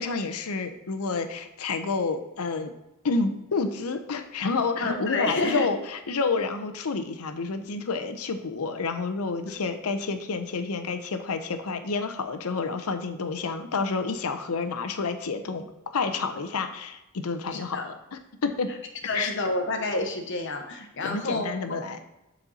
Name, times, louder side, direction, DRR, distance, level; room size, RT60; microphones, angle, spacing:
voice 1, 0.0-2.7 3.0-18.7 19.1-19.3 21.0-22.0, left 4 dB, 75° left, 8 dB, 0.6 m, -29 dB
voice 2, 4.8-5.7 17.5-17.8 19.0-21.8, left 2 dB, 55° left, 4 dB, 1.0 m, -29 dB
8.1 x 4.2 x 4.1 m, 0.93 s
head